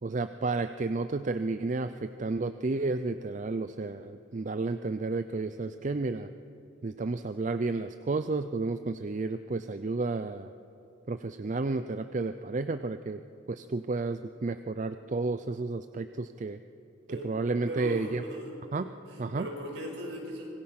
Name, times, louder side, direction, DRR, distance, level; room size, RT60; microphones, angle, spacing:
voice 1, 0.0-6.3 6.8-10.5 11.1-13.2 13.5-16.6 17.2-18.2 18.7-18.9 19.2-19.5, right 3 dB, 40° right, 10 dB, 0.5 m, -31 dB
voice 2, 17.7-18.6 19.1-20.5, equal, 65° right, 0 dB, 5.7 m, -38 dB
25.0 x 21.5 x 5.8 m, 2.9 s
head